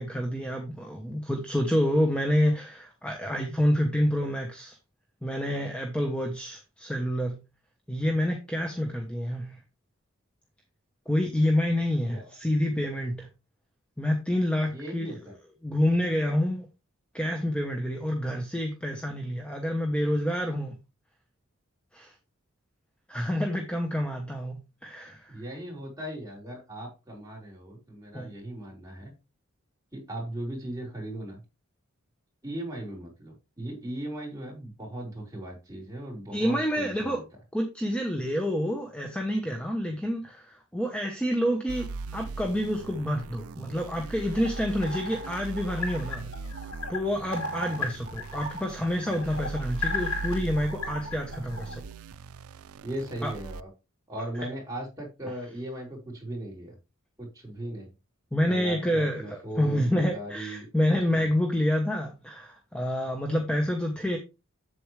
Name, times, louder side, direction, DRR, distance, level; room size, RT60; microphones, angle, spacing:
voice 1, 0.0-4.8 5.2-7.4 7.9-9.6 11.1-13.3 14.0-15.2 15.6-16.7 17.1-20.8 21.9-22.1 23.1-25.4 28.1-28.3 36.3-37.2 37.5-41.9 42.1-46.3 46.9-51.8 53.2-53.3 58.3-64.2, equal, 5° left, 1.0 m, -28 dB
voice 2, 14.7-15.3 25.3-29.1 29.9-31.4 32.4-37.2 52.8-53.7 54.1-56.8 57.2-57.9 58.4-60.7 61.1-61.3, right 1 dB, 15° right, 4.7 m, -38 dB
sound 1, 41.7-53.6, right 4 dB, 80° right, 0.4 m, -40 dB
sound 2, 44.2-51.7, left 3 dB, 85° left, 4.5 m, -36 dB
8.2 x 7.9 x 3.3 m
head